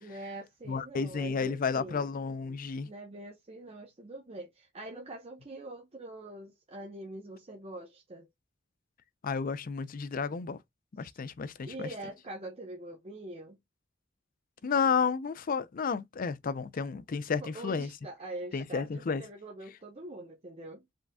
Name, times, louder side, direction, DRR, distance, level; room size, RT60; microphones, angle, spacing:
voice 1, 0.0-2.0 2.8-8.3 11.0-11.2 11.6-13.6 17.4-20.8, right 1 dB, 30° right, 0.9 m, -44 dB
voice 2, 0.7-2.9 9.2-10.6 11.0-11.9 14.6-17.9 18.5-19.2, left 5 dB, 45° left, 0.4 m, -31 dB
4.8 x 3.8 x 2.2 m
head